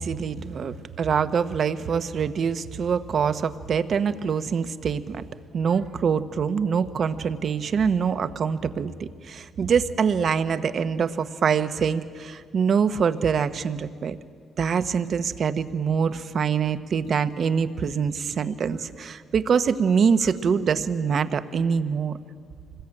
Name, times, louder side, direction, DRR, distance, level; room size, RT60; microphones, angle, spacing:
voice 1, 0.0-5.2 5.5-14.2 14.6-22.2, right 6 dB, 55° right, 12 dB, 1.0 m, -24 dB
25.0 x 20.5 x 8.9 m, 2.1 s
cardioid pair, 90°, 0 cm